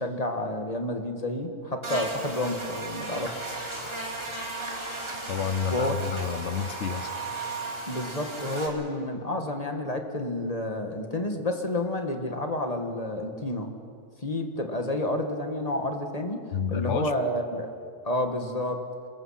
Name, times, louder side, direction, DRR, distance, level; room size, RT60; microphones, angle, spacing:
voice 1, 0.0-3.4 5.7-5.9 7.9-13.7 14.2-17.7 18.0-18.8, left 1 dB, 25° left, 4 dB, 1.7 m, -30 dB
Buzz, 1.8-8.7, right 2 dB, 20° right, 2.7 m, -35 dB
voice 2, 5.3-7.1 16.5-17.1, left 7 dB, 55° left, 12 dB, 1.0 m, -29 dB
26.5 x 21.5 x 5.8 m, 2.4 s
omnidirectional pair, 1.6 m